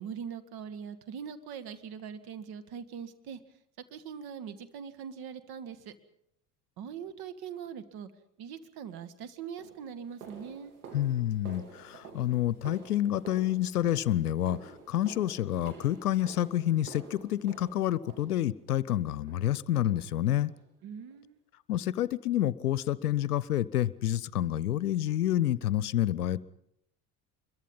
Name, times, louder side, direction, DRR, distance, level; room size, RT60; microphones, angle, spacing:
voice 1, 0.0-3.4 3.9-5.9 6.8-8.1 8.4-10.7 20.8-21.4, right 7 dB, 55° right, 11 dB, 2.0 m, -42 dB
sound 1, 8.9-9.0 9.6-18.8 19.3-19.6 19.9-20.1 20.5-20.7 21.1-21.2 21.7-21.8, right 5 dB, 80° right, 3.5 m, -50 dB
voice 2, 10.9-20.5 21.7-26.4, left 12 dB, 85° left, 20 dB, 0.7 m, -28 dB
25.5 x 22.5 x 5.5 m, 0.77 s
hypercardioid pair, 60°, 44 cm